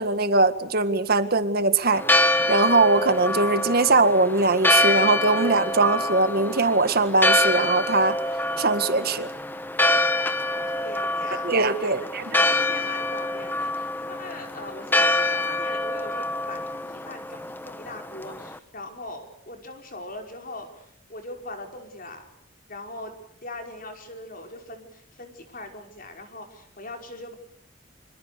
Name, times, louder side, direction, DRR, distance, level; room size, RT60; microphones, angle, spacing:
voice 1, 0.0-2.0 2.5-8.2 8.6-9.3 11.4-12.2, right 3 dB, 50° right, 10 dB, 1.9 m, -21 dB
Church bell, 1.9-18.6, left 2 dB, 10° left, 1.1 m, -25 dB
voice 2, 10.2-22.2 22.7-27.3, left 2 dB, 45° left, 4 dB, 5.3 m, -41 dB
26.0 x 26.0 x 6.8 m, 0.72 s
head